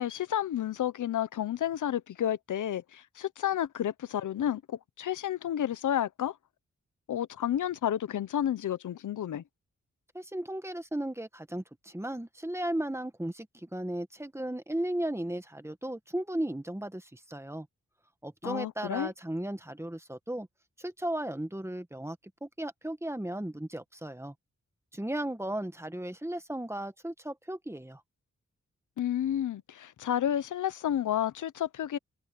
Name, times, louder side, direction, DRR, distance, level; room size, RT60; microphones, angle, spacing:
voice 1, 0.0-6.3 7.1-9.4 18.4-19.1 29.0-32.0, left 10 dB, 90° left, 0.7 m, -31 dB
voice 2, 10.1-17.7 18.2-20.5 20.8-22.2 22.4-24.3 24.9-28.0, right 1 dB, 10° right, 1.6 m, -35 dB
cardioid pair, 70°, 30 cm